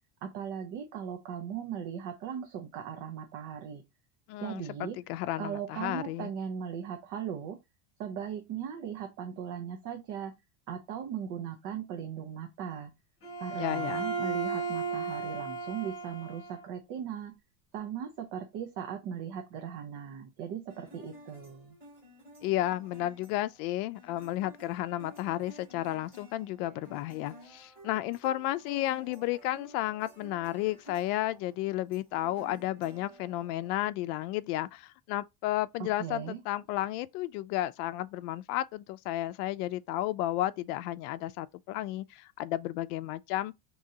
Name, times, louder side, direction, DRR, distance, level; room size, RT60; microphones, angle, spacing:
voice 1, 0.2-3.8 4.4-5.0 5.4-7.6 8.0-10.3 10.7-12.9 13.4-17.4 17.7-21.8 35.8-36.4, right 8 dB, 40° right, 0.7 m, -38 dB
voice 2, 4.3-6.3 13.6-14.1 22.4-43.5, left 15 dB, 80° left, 0.5 m, -33 dB
Bowed string instrument, 13.2-16.7, right 4 dB, 30° left, 1.6 m, -35 dB
sound 1, 20.7-33.9, equal, 20° right, 2.6 m, -53 dB
4.9 x 3.0 x 2.7 m
cardioid pair, 175°, 45 cm